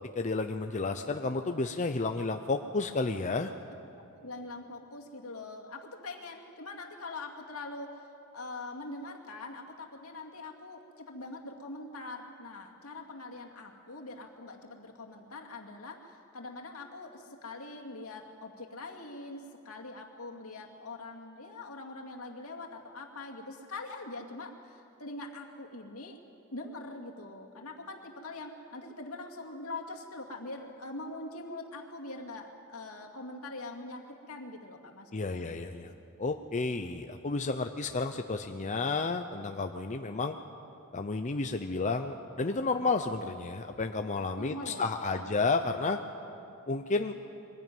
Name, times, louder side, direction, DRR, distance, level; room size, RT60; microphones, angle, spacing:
voice 1, 0.1-3.5 35.1-35.9 36.2-40.4 40.9-46.0 46.7-47.1, left 3 dB, 35° left, 6 dB, 0.6 m, -31 dB
voice 2, 4.2-8.1 8.3-26.2 26.5-35.7 44.4-45.3, left 2 dB, 75° left, 1 dB, 2.4 m, -43 dB
23.0 x 16.0 x 9.3 m, 2.7 s
head